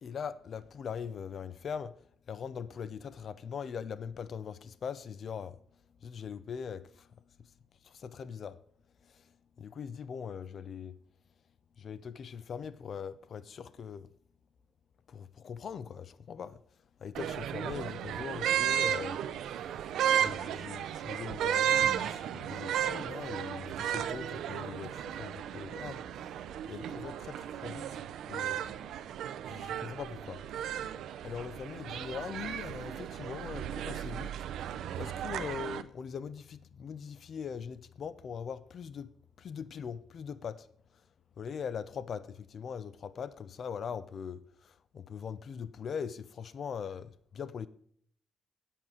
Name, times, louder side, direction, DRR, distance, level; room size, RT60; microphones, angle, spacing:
voice 1, 0.0-1.9 2.3-5.6 6.0-7.1 7.8-8.6 9.1-9.2 9.6-11.0 11.8-14.1 15.1-16.6 17.0-19.2 20.1-26.3 26.7-27.9 28.3-28.7 29.5-30.4 31.2-34.3 35.0-39.1 39.4-40.7 41.4-47.7, left 7 dB, 40° left, 0.5 m, -41 dB
sound 1, 17.1-35.8, right 10 dB, 70° right, 0.6 m, -34 dB
9.0 x 8.5 x 4.9 m
cardioid pair, 170°, 0 cm